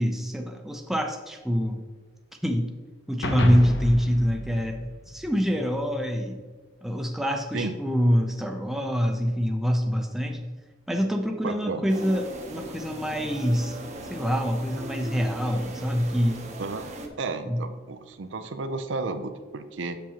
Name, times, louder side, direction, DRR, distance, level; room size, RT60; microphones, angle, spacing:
voice 1, 0.0-1.8 2.4-2.7 3.1-6.4 6.8-10.5 10.9-13.8 14.1-16.5 17.5-17.6, equal, ahead, 3 dB, 0.5 m, -25 dB
sound 1, 3.2-5.7, left 1 dB, 65° left, 0.9 m, -29 dB
voice 2, 11.4-11.9 16.6-16.9 17.2-20.0, right 3 dB, 75° right, 9 dB, 0.5 m, -32 dB
sound 2, 11.9-17.1, right 2 dB, 35° right, 0.8 m, -39 dB
7.4 x 6.8 x 2.9 m, 1.4 s
head